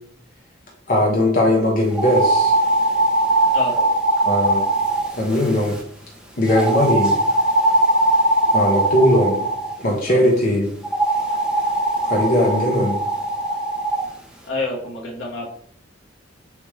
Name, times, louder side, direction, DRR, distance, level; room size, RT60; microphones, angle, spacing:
voice 1, 0.9-2.5 4.2-4.6 5.1-5.7 6.4-7.1 8.5-9.4 9.8-10.7 12.0-13.0, left 1 dB, 50° left, -1 dB, 0.9 m, -19 dB
sound 1, 1.9-5.8 6.5-9.8 10.8-14.1, right 1 dB, 5° right, 0.8 m, -20 dB
voice 2, 14.5-15.5, left 2 dB, 85° left, -2 dB, 1.4 m, -27 dB
6.4 x 2.5 x 3.3 m, 0.63 s
head